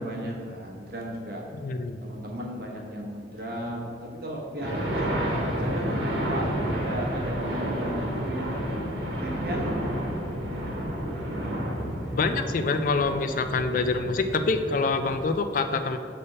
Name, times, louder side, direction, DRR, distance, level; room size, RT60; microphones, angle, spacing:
voice 1, 0.0-1.4 2.0-8.6 9.2-9.8 10.4-10.5, equal, 55° right, -1 dB, 1.1 m, -35 dB
voice 2, 1.6-2.0 12.2-16.0, left 3 dB, 45° left, 8 dB, 0.3 m, -26 dB
sound 1, 4.6-15.3, equal, 75° right, 1.3 m, -30 dB
sound 2, 9.7-15.2, equal, 10° right, 0.8 m, -43 dB
6.8 x 3.4 x 5.4 m, 2.5 s
head